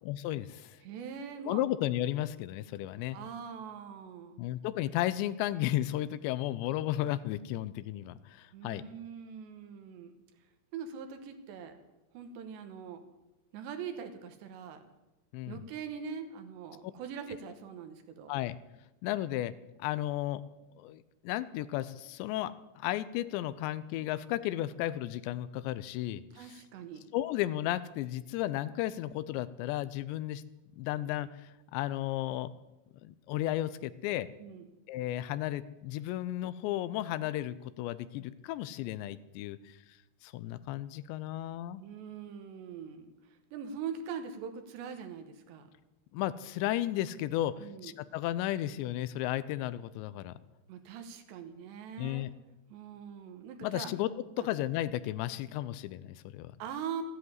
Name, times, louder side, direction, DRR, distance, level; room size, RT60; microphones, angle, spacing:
voice 1, 0.0-0.8 1.5-3.2 4.4-8.8 15.3-15.6 18.3-18.6 19.0-19.5 19.8-20.4 20.8-26.6 27.1-30.4 30.8-32.5 33.0-34.3 34.9-39.8 40.2-41.8 46.1-50.3 52.0-52.3 53.6-54.1 54.4-56.5, left 14 dB, 90° left, 15 dB, 2.9 m, -34 dB
voice 2, 0.8-1.6 3.1-4.4 8.5-10.2 10.7-11.8 12.1-13.0 13.5-14.8 15.5-18.4 26.3-27.1 34.4-34.7 41.8-45.7 47.6-47.9 50.7-52.3 52.7-53.9 54.4-54.5 56.6-57.0, right 7 dB, 80° right, 7 dB, 3.5 m, -42 dB
13.5 x 10.5 x 9.5 m, 1.0 s
omnidirectional pair, 5.0 m